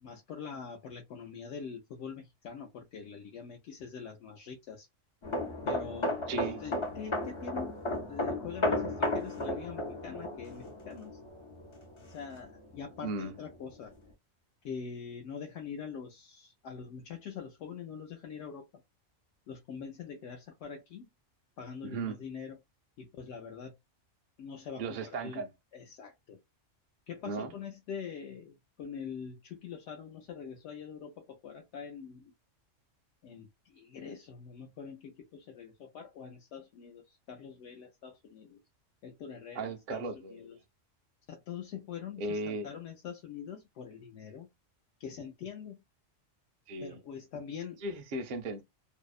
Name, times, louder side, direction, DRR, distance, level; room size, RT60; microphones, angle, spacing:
voice 1, 0.0-4.9 5.6-7.7 8.1-11.2 12.0-13.9 14.6-18.7 19.5-21.1 21.6-22.6 23.0-23.8 24.4-25.5 25.7-26.4 27.1-32.3 33.2-38.6 39.0-40.6 41.3-44.5 45.0-45.8 46.8-47.8, left 6 dB, 70° left, 0.8 m, -44 dB
sound 1, 5.2-12.7 13.0-13.3, left 1 dB, 45° left, 0.4 m, -34 dB
voice 2, 6.3-6.6 13.0-13.3 21.8-22.2 24.8-25.5 27.2-27.5 39.5-40.6 42.2-42.7 46.7-47.0 47.8-48.6, right 3 dB, 55° right, 0.6 m, -36 dB
2.7 x 2.0 x 2.3 m
omnidirectional pair, 1.3 m